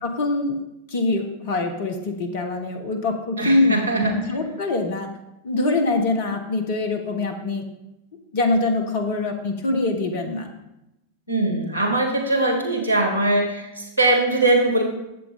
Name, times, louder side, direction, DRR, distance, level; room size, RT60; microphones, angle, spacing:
voice 1, 0.0-0.6 0.9-5.1 5.4-7.6 8.3-10.5, left 2 dB, 50° left, 5 dB, 1.3 m, -24 dB
voice 2, 3.4-4.1 11.3-14.8, right 2 dB, 85° left, 2 dB, 2.4 m, -21 dB
11.5 x 7.6 x 3.6 m, 0.91 s
figure-of-eight pair, 90°, 0 cm